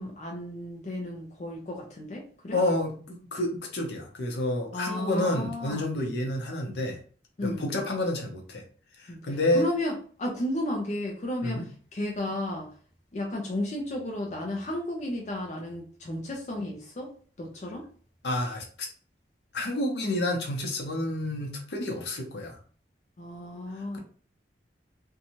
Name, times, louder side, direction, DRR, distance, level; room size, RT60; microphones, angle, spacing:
voice 1, 0.0-2.6 4.7-5.9 7.4-7.7 9.1-9.2 9.5-11.6 11.9-12.7 13.1-17.1 17.4-17.9 23.2-24.0, left 1 dB, 40° left, -1 dB, 0.5 m, -33 dB
voice 2, 2.5-7.0 7.4-8.6 9.2-9.7 11.4-11.6 18.2-18.9 19.5-22.6, left 1 dB, 75° left, 1 dB, 0.7 m, -29 dB
2.7 x 2.2 x 2.9 m, 0.43 s
head